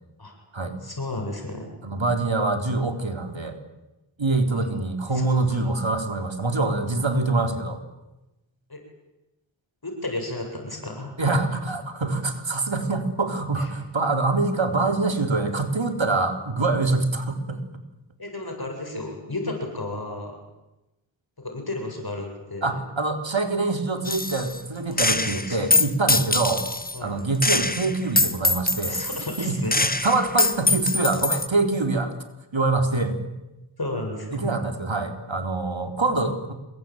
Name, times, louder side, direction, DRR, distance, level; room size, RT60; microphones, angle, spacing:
voice 1, 0.8-1.7 4.5-4.7 5.1-5.6 8.7-8.8 9.8-11.2 13.6-13.7 18.2-20.4 21.4-22.7 24.9-25.6 26.9-27.2 28.9-29.7 33.8-34.6, left 2 dB, 50° left, 3 dB, 7.8 m, -33 dB
voice 2, 1.8-3.6 4.2-7.8 11.2-17.6 22.6-26.6 27.0-29.0 29.4-29.6 30.0-32.1 32.5-33.3 34.3-36.5, right 3 dB, 70° right, 6 dB, 3.7 m, -25 dB
Gunshot gunfire, 24.0-24.6 25.0-27.0 27.4-31.5, left 2 dB, 20° left, 1.3 m, -23 dB
26.5 x 22.5 x 9.3 m, 0.99 s
wide cardioid pair, 50°, 47 cm